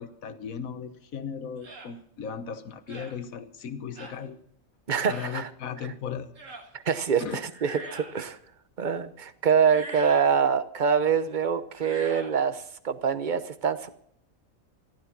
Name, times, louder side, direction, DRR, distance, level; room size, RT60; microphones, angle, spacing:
voice 1, 0.0-4.4 5.1-6.3 7.2-7.4, left 7 dB, 90° left, 11 dB, 1.5 m, -37 dB
sound 1, 1.6-1.9 2.9-3.2 4.0-4.2 5.0-5.3 6.4-6.7 7.5-8.2 9.6-10.3 11.7-12.4, right 3 dB, 70° right, 2.4 m, -43 dB
voice 2, 4.9-5.5 5.8-5.9 6.8-8.4 8.8-13.9, right 6 dB, 40° right, 12 dB, 1.0 m, -25 dB
15.0 x 12.0 x 6.0 m, 0.66 s
omnidirectional pair, 1.4 m